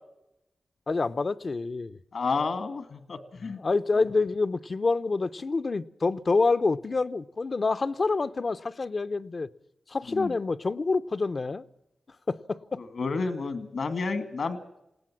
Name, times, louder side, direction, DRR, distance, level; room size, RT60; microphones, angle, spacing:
voice 1, 0.9-2.0 3.6-9.5 9.9-11.6 12.3-12.8, left 3 dB, 55° left, 0.8 m, -27 dB
voice 2, 2.1-3.6 10.1-10.3 12.8-14.6, left 4 dB, 80° left, 2.0 m, -30 dB
20.0 x 18.0 x 7.5 m
cardioid pair, 65°, 0 cm